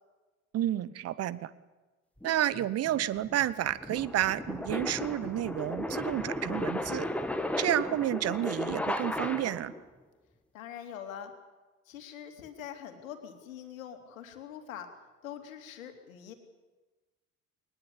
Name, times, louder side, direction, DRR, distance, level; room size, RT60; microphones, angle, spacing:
voice 1, 0.5-1.5 2.2-7.1 7.6-9.7, right 12 dB, 35° right, 18 dB, 1.1 m, -30 dB
sound 1, 2.2-9.8, left 1 dB, 5° left, 1.7 m, -35 dB
voice 2, 10.5-11.3 11.9-14.9 15.2-16.3, left 9 dB, 65° left, 6 dB, 2.9 m, -44 dB
22.5 x 20.0 x 7.4 m, 1.3 s
figure-of-eight pair, 65°, 42 cm